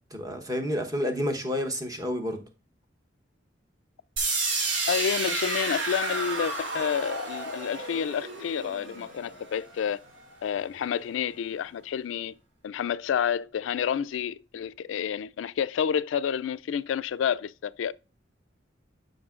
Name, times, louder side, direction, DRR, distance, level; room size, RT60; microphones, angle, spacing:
voice 1, 0.1-2.4, left 1 dB, 20° right, 0.9 m, -29 dB
sound 1, 4.2-10.1, right 3 dB, 85° right, 2.1 m, -31 dB
voice 2, 4.9-10.0 10.4-12.3 12.6-17.9, left 8 dB, 85° left, 0.3 m, -29 dB
12.0 x 5.2 x 2.4 m
head